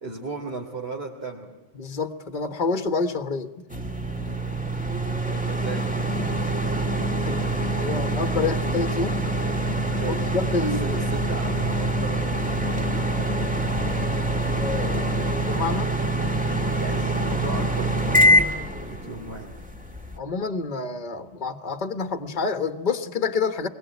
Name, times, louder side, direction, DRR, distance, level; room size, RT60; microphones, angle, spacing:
voice 1, 0.0-1.5 4.1-4.5 5.3-5.9 9.9-10.3 10.8-13.2 16.8-18.5 18.8-19.5, right 3 dB, 55° right, -2 dB, 3.3 m, -36 dB
voice 2, 1.7-3.6 7.2-7.4 7.8-9.2 10.3-11.0 14.6-15.9 20.2-23.7, left 4 dB, 40° left, 9 dB, 1.4 m, -28 dB
sound 1, 3.7-20.2, right 1 dB, 5° right, 1.7 m, -25 dB
25.0 x 21.5 x 9.4 m, 1.2 s
omnidirectional pair, 1.2 m